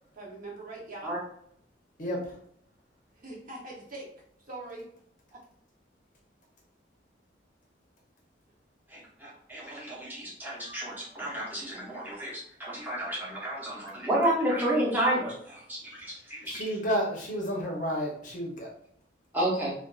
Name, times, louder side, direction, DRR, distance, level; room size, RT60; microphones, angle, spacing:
voice 1, 0.1-1.1 3.2-4.1 4.5-4.8 5.3-5.4, right 2 dB, 50° right, -3 dB, 0.8 m, -42 dB
voice 2, 2.0-2.3 16.4-18.7, equal, 45° left, -1 dB, 0.7 m, -31 dB
voice 3, 8.9-16.7 19.3-19.7, right 1 dB, 10° right, -5 dB, 0.8 m, -31 dB
2.4 x 2.3 x 2.3 m, 0.66 s
head